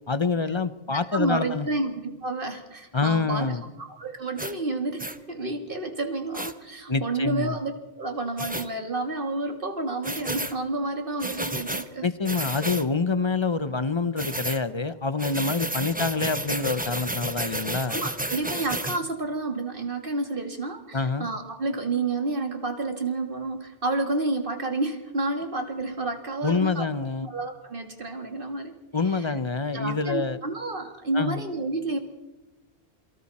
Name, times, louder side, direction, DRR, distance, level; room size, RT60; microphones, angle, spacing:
voice 1, 0.1-1.7 2.9-3.6 6.9-7.6 12.0-18.0 20.9-21.3 26.4-27.3 28.9-30.4 31.1-31.4, left 4 dB, 30° left, 13 dB, 0.7 m, -26 dB
voice 2, 0.9-7.7 8.0-12.1 17.9-26.9 27.2-28.7 29.1-29.3 29.7-32.0, right 2 dB, 55° right, 4 dB, 2.5 m, -30 dB
sound 1, 4.4-4.5 5.0-5.2 6.3-6.5 8.4-8.7 10.0-10.5 11.2-11.8 12.2-12.8 14.2-14.6 15.2-19.0, right 1 dB, 10° right, 0.8 m, -31 dB
27.5 x 24.0 x 4.3 m, 1.0 s
omnidirectional pair, 1.1 m